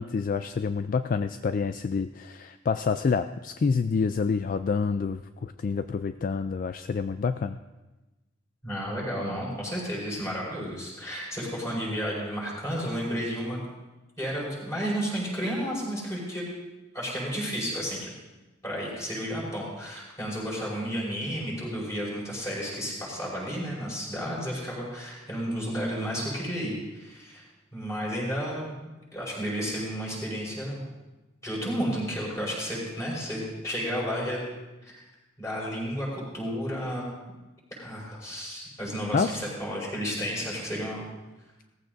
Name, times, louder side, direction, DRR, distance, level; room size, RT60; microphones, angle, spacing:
voice 1, 0.0-7.6 39.1-39.4, left 5 dB, 45° left, 10 dB, 0.3 m, -28 dB
voice 2, 8.6-13.6 14.2-16.5 16.9-18.1 18.6-27.4 27.7-28.7 29.1-30.8 31.4-34.4 34.8-35.0 35.4-37.0 37.8-41.1, equal, 15° left, -5 dB, 5.3 m, -32 dB
18.0 x 15.0 x 2.6 m, 1.1 s
head